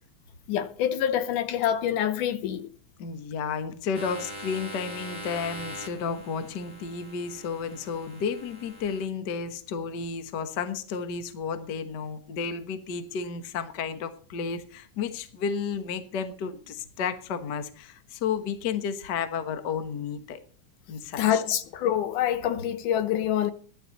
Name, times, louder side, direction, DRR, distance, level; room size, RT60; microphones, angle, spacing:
voice 1, 0.5-2.7 21.2-23.5, left 10 dB, 80° left, 2.5 m, -26 dB
voice 2, 3.0-20.4 20.9-21.4, left 6 dB, 50° left, 1.3 m, -32 dB
sound 1, 3.9-9.1, equal, 25° left, 2.2 m, -42 dB
15.0 x 11.5 x 4.1 m
omnidirectional pair, 3.6 m